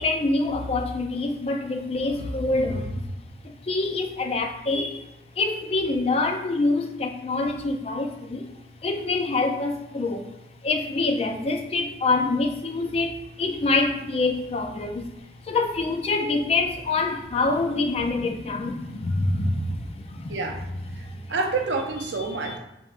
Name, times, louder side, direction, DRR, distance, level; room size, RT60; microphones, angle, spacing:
voice 1, 0.0-3.0 3.4-5.1 5.4-8.5 8.8-10.3 10.6-15.1 15.4-20.4 21.0-21.3 22.5-22.6, left 3 dB, 35° left, 4 dB, 0.3 m, -26 dB
voice 2, 20.3-20.6 21.0-22.6, right 3 dB, 85° right, 4 dB, 0.5 m, -28 dB
4.1 x 3.4 x 2.4 m, 0.90 s
head